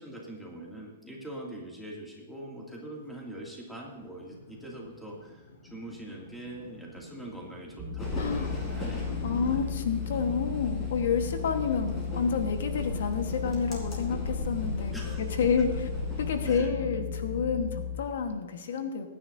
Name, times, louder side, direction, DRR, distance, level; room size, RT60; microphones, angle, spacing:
voice 1, 0.0-9.6 14.9-15.3 16.4-16.7, right 1 dB, ahead, -3 dB, 2.4 m, -43 dB
sound 1, 3.1-9.6, left 2 dB, 60° left, 4.5 m, -45 dB
sound 2, 7.8-18.0, left 6 dB, 25° right, 1.7 m, -35 dB
sound 3, 8.0-16.5, left 1 dB, 20° left, 3.7 m, -38 dB
voice 2, 8.2-8.5 9.2-15.9 16.2-19.1, left 6 dB, 75° left, 6 dB, 1.3 m, -29 dB
22.5 x 10.0 x 2.7 m, 1.2 s
hypercardioid pair, 155°, 0 cm